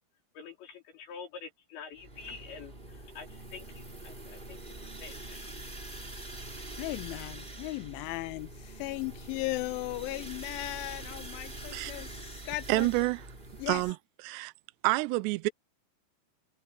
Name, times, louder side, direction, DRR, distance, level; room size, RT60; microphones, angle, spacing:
voice 1, 0.4-5.4, left 5 dB, 65° left, 5.7 m, -47 dB
sound 1, 2.0-13.9, right 2 dB, 15° right, 2.7 m, -44 dB
voice 2, 6.8-12.9 13.6-13.8, left 20 dB, 80° left, 3.1 m, -37 dB
voice 3, 12.7-13.2 13.7-14.0 14.2-14.5 14.8-15.5, right 22 dB, 80° right, 2.6 m, -28 dB
omnidirectional pair, 5.6 m